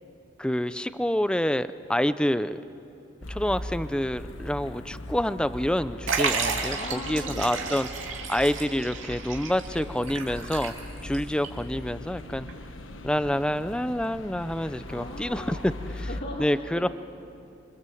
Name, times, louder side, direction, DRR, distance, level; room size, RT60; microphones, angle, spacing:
voice 1, 0.4-2.6 3.3-10.7 11.0-12.5 13.0-16.1 16.4-16.9, left 1 dB, 5° left, 13 dB, 0.5 m, -27 dB
sound 1, 3.2-16.2, left 1 dB, 85° left, 1.4 m, -40 dB
Liquid, 6.1-11.2 11.4-11.5 12.5-12.6, right 5 dB, 85° right, 2.9 m, -32 dB
voice 2, 6.7-7.8 14.8-16.9, left 1 dB, 50° left, -4 dB, 2.7 m, -39 dB
27.0 x 24.5 x 7.8 m, 2.7 s
head